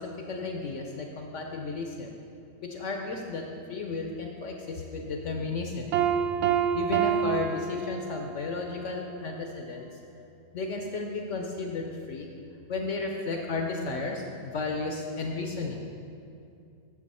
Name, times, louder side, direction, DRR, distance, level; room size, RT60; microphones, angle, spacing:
voice 1, 0.0-2.2 2.6-5.9 6.7-9.9 10.5-12.3 12.7-14.2 14.5-15.9, left 3 dB, 65° left, 2 dB, 0.8 m, -33 dB
Piano, 5.9-8.5, right 8 dB, 90° right, 0.6 m, -27 dB
8.6 x 6.9 x 4.2 m, 2.5 s
omnidirectional pair, 1.8 m